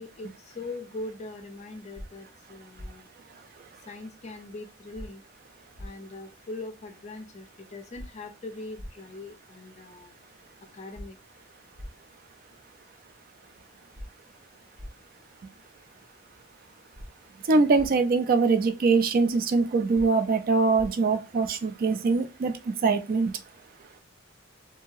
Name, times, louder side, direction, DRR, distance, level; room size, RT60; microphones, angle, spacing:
voice 1, 0.0-3.1 3.9-5.2 5.8-10.2 10.7-11.2, left 2 dB, 35° left, 0.4 m, -41 dB
sound 1, 1.9-2.1 2.7-2.9 4.9-5.1 5.7-5.9 7.9-8.1 8.7-8.9 10.9-11.1 11.7-11.9 13.9-14.1 14.7-14.9 16.9-17.1 17.7-17.9 19.9-20.1 20.7-20.9, equal, 80° right, 1.0 m, -40 dB
voice 2, 17.5-23.3, right 4 dB, 45° right, 0.4 m, -23 dB
2.8 x 2.7 x 2.3 m
head